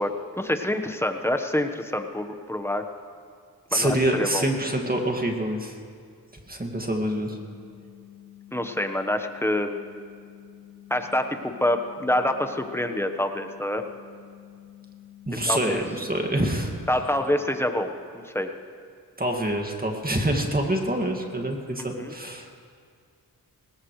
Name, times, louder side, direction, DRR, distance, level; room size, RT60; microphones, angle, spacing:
voice 1, 0.0-2.8 3.7-4.4 8.5-9.8 10.9-13.8 15.4-15.8 16.9-18.5 21.8-22.1, left 1 dB, 5° left, 6 dB, 1.2 m, -26 dB
voice 2, 3.7-5.7 6.5-7.4 15.3-16.7 19.2-22.5, right 1 dB, 25° right, 2 dB, 2.1 m, -26 dB
sound 1, 7.2-17.2, left 12 dB, 40° left, 5.1 m, -49 dB
19.5 x 18.5 x 3.3 m, 2.2 s
cardioid pair, 50°, 37 cm